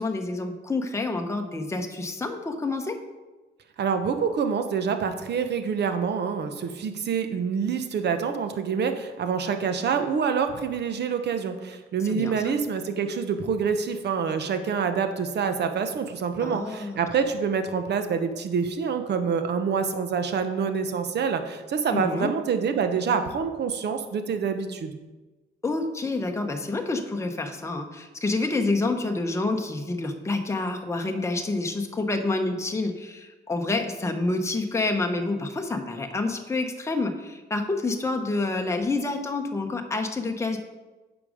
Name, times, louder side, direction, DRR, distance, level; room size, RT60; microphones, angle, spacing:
voice 1, 0.0-3.0 12.0-12.5 16.4-17.0 21.9-22.4 25.6-40.6, left 2 dB, 15° left, 4 dB, 0.9 m, -28 dB
voice 2, 3.8-25.0, right 6 dB, 60° right, 8 dB, 0.9 m, -26 dB
8.6 x 5.2 x 5.0 m, 1.2 s
cardioid pair, 90°, 20 cm